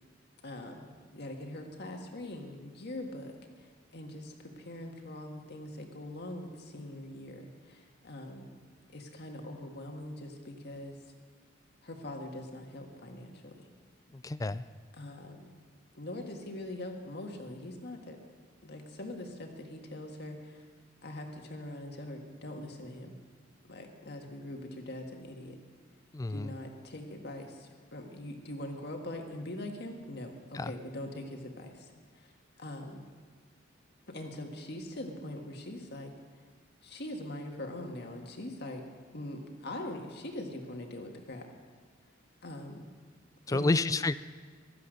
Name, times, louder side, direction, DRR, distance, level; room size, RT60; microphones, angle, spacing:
voice 1, 0.4-0.9 1.1-3.3 3.9-8.5 8.9-11.0 11.8-13.5 15.0-15.4 16.0-18.2 18.6-20.6 21.0-23.2 23.6-25.6 26.3-31.9 32.2-32.3 32.6-33.0 34.1-36.1 36.8-38.8 39.1-41.5 42.4-42.8 43.5-44.0, left 1 dB, 55° left, 3 dB, 1.8 m, -42 dB
voice 2, 14.1-14.7 26.1-26.6 30.5-30.7 43.5-44.1, left 2 dB, 15° left, 15 dB, 0.3 m, -30 dB
15.5 x 12.5 x 6.5 m, 1.5 s
head